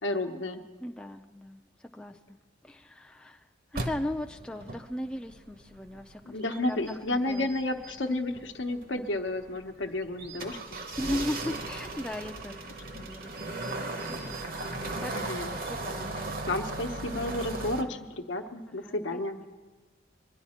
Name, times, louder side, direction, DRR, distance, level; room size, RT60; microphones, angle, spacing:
voice 1, 0.0-0.6 6.3-11.1 12.9-13.1 15.1-15.5 16.4-19.4, left 2 dB, 80° left, 6 dB, 0.9 m, -32 dB
voice 2, 0.8-6.4 6.7-7.5 11.0-15.1 15.5-16.4 16.7-16.8 17.8-18.0 18.7-19.5, left 1 dB, 5° left, 3 dB, 0.4 m, -38 dB
sound 1, 3.7-17.8, right 2 dB, 50° right, 0.9 m, -38 dB
sound 2, 6.4-8.0 8.4-8.5 9.2-10.4 10.8-11.7 12.2-14.7, right 6 dB, 80° right, 1.9 m, -50 dB
22.0 x 10.5 x 4.3 m, 1.4 s
head